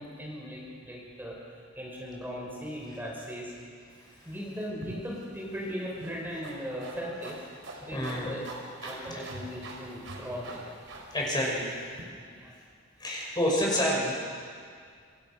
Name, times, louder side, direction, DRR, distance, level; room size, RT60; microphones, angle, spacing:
voice 1, 0.0-3.5 4.2-7.4 7.8-8.4 8.8-10.7 12.3-12.5, equal, 10° right, -3 dB, 5.6 m, -38 dB
voice 2, 3.9-4.3 7.8-8.4 8.8-9.2 11.1-11.7 13.0-14.1, equal, 20° left, -3 dB, 6.1 m, -29 dB
sound 1, 4.8-12.0, right 1 dB, 75° right, 4.5 m, -45 dB
27.0 x 26.0 x 6.2 m, 2.1 s
head